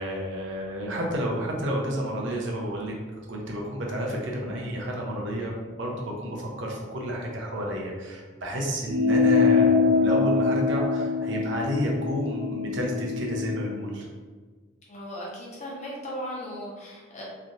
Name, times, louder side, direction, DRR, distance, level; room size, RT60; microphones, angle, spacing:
voice 1, 0.0-2.9 3.3-14.1, equal, 70° right, -1 dB, 0.7 m, -30 dB
sound 1, 8.9-13.7, left 4 dB, 90° right, 1.1 m, -23 dB
voice 2, 14.9-17.2, equal, 35° left, -5 dB, 0.9 m, -37 dB
3.2 x 2.5 x 2.8 m, 1.4 s
head